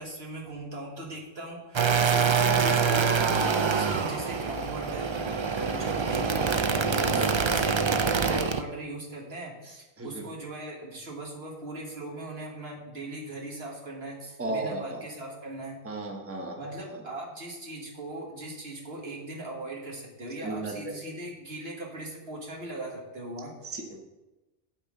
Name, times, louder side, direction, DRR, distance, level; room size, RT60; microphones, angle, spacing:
voice 1, 0.0-15.8 16.6-23.7, right 2 dB, 75° right, -1 dB, 2.0 m, -39 dB
sound 1, 1.7-8.6, right 5 dB, 40° right, 0.4 m, -25 dB
voice 2, 14.4-15.0 15.8-16.5 20.4-20.9 23.7-24.0, right 2 dB, 15° right, 1 dB, 1.0 m, -34 dB
8.8 x 4.4 x 7.4 m, 1.1 s
omnidirectional pair, 1.1 m